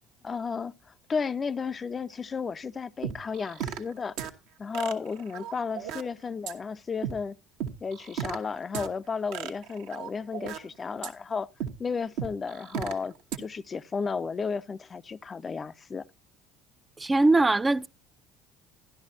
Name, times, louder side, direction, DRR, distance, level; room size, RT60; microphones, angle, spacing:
voice 1, 0.2-4.2 4.6-7.4 7.8-11.5 11.8-16.1, left 5 dB, 30° left, 0.5 m, -33 dB
sound 1, 3.0-3.9 4.2-4.3 4.7-6.0 6.5-6.6 7.0-7.1 7.6-8.4 8.7-8.9 9.3-10.6 11.0-11.1 11.6-11.7 12.2-12.9 13.3-13.4, right 8 dB, 65° right, 1.2 m, -34 dB
voice 2, 17.0-17.9, right 2 dB, 20° right, 0.5 m, -21 dB
13.5 x 11.5 x 2.7 m
hypercardioid pair, 60°, 0 cm